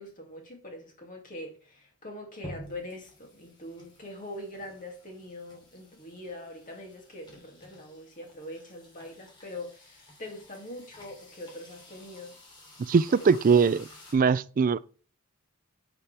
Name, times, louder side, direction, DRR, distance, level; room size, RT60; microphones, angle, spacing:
voice 1, 0.0-12.4 13.2-13.4, left 1 dB, 40° left, 2.5 m, -43 dB
sound 1, 2.4-14.1, left 1 dB, 20° left, 3.1 m, -51 dB
voice 2, 12.8-13.9 14.1-14.8, right 5 dB, 40° right, 0.3 m, -22 dB
11.0 x 5.7 x 3.4 m
head